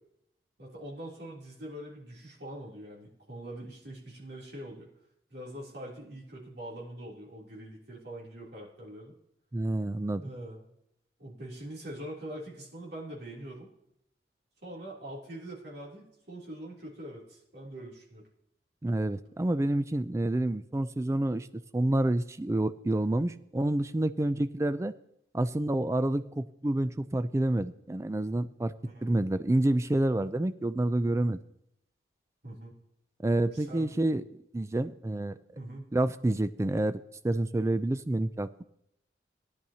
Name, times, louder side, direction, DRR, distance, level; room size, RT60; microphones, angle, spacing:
voice 1, 0.6-4.9 5.3-9.1 10.2-10.6 11.2-13.7 14.6-18.2 28.8-29.2 32.4-32.8 33.5-33.9 35.5-35.9, right 1 dB, 65° right, -4 dB, 3.1 m, -43 dB
voice 2, 9.5-10.2 18.8-21.5 21.7-24.9 25.3-28.7 29.0-31.4 33.2-34.2 34.5-35.4 35.9-38.6, right 1 dB, 15° right, 13 dB, 0.3 m, -28 dB
17.0 x 10.5 x 2.8 m, 0.80 s
head